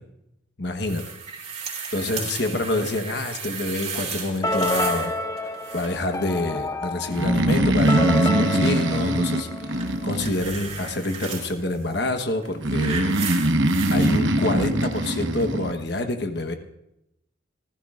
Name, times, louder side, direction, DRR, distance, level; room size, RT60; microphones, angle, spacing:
voice 1, 0.6-1.0 1.9-5.1 5.7-13.5 13.9-16.5, left 2 dB, 55° left, 6 dB, 1.2 m, -27 dB
sound 1, 0.9-5.1 5.4-6.1 9.8-11.5 12.3-14.1 15.0-15.1, right 6 dB, 35° right, 3.5 m, -34 dB
sound 2, 4.4-10.2, left 1 dB, 15° left, 0.5 m, -29 dB
Breathing, 7.1-10.8 12.6-15.7, right 1 dB, 75° right, 1.0 m, -22 dB
27.0 x 15.0 x 2.5 m, 0.86 s
head